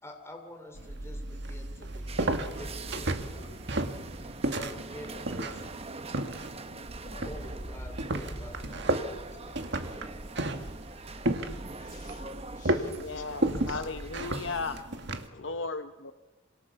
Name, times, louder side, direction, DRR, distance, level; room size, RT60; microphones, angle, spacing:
voice 1, 0.0-3.2 4.6-5.6 7.2-10.1, left 1 dB, 15° left, 3 dB, 3.3 m, -47 dB
sound 1, 0.7-15.3, right 1 dB, 60° right, 1.8 m, -34 dB
sound 2, 2.1-14.8, right 2 dB, 30° right, 1.1 m, -43 dB
voice 2, 2.4-2.8 3.3-4.3 5.0-5.6 5.9-6.4 7.0-7.3 8.6-8.7 9.8-9.9 10.5-10.6 10.9-11.0 11.7-13.3 15.3-15.7, left 2 dB, 40° left, 2 dB, 5.8 m, -53 dB
voice 3, 12.9-14.8 15.3-16.1, left 4 dB, 70° left, 8 dB, 1.0 m, -36 dB
27.5 x 26.5 x 7.0 m, 1.2 s
head